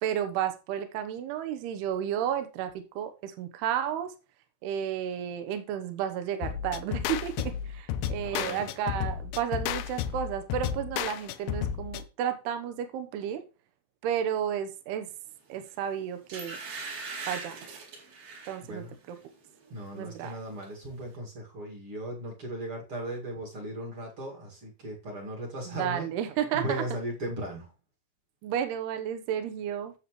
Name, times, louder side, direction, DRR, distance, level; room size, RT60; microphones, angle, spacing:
voice 1, 0.0-4.1 4.6-13.4 14.0-15.1 15.5-16.6 17.3-17.8 18.5-19.2 19.9-20.4 25.7-26.8 28.4-29.9, right 9 dB, 75° right, 8 dB, 3.0 m, -32 dB
sound 1, 6.4-12.0, left 9 dB, 80° left, 2.3 m, -32 dB
voice 2, 8.2-8.7 18.7-18.9 19.7-26.1 26.5-27.7, right 1 dB, 40° right, 0 dB, 2.4 m, -37 dB
sound 2, 15.6-15.8 16.3-18.6 19.1-19.3 19.6-20.4 20.6-20.7, right 4 dB, 60° right, 4.2 m, -40 dB
11.5 x 7.3 x 3.1 m, 0.30 s
omnidirectional pair, 4.8 m